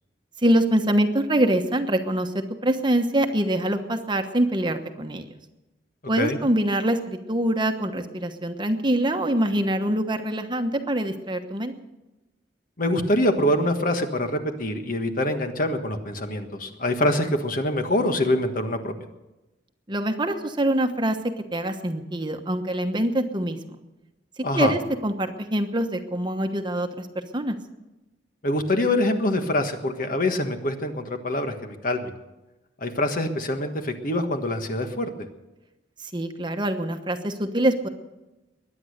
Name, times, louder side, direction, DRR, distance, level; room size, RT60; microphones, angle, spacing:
voice 1, 0.4-5.3 6.1-11.7 19.9-21.2 21.5-23.6 24.5-27.6 36.1-37.9, right 1 dB, 25° right, 6 dB, 1.1 m, -24 dB
voice 2, 12.8-18.9 24.4-24.7 28.4-32.1 32.8-35.3, left 1 dB, 50° left, 6 dB, 1.5 m, -25 dB
22.0 x 9.9 x 6.6 m, 1.0 s
head